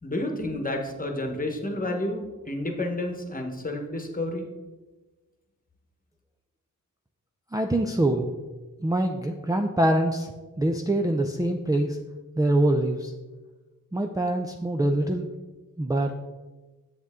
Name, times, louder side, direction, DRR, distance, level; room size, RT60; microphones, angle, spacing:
voice 1, 0.0-4.5, left 1 dB, 25° left, 3 dB, 1.2 m, -30 dB
voice 2, 7.5-8.3 8.8-12.0 12.4-13.1 13.9-15.3 15.8-16.1, right 1 dB, 10° right, 3 dB, 0.4 m, -24 dB
8.0 x 7.3 x 3.6 m, 1.2 s
wide cardioid pair, 105°, 34 cm